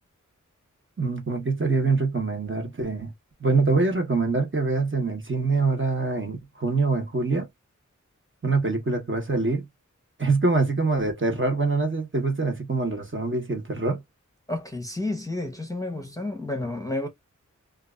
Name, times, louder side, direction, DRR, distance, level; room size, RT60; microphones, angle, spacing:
voice 1, 1.0-3.1 3.4-7.5 8.4-9.7 10.2-14.0, right 3 dB, 40° right, 1.0 m, -24 dB
voice 2, 14.5-17.1, left 2 dB, 10° left, 0.8 m, -31 dB
2.6 x 2.4 x 2.3 m
wide cardioid pair, 40°, 31 cm